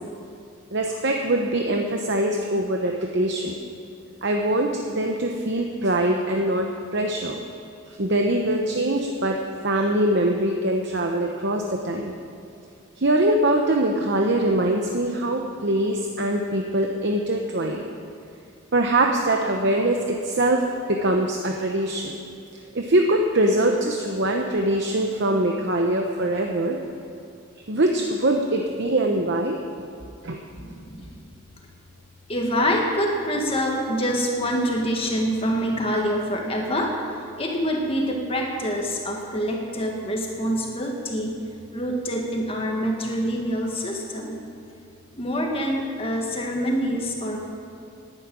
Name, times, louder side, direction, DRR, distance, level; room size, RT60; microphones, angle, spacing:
voice 1, 0.7-3.5 4.2-7.4 8.0-12.1 13.0-17.9 18.7-20.6 20.9-22.1 22.7-26.8 27.7-29.6 30.2-30.4, right 1 dB, 50° right, 2 dB, 0.9 m, -23 dB
voice 2, 30.6-31.1 32.3-37.1 37.4-41.3 41.7-44.4 45.2-47.4, equal, 25° left, 0 dB, 1.8 m, -26 dB
11.0 x 11.0 x 8.9 m, 2.5 s
head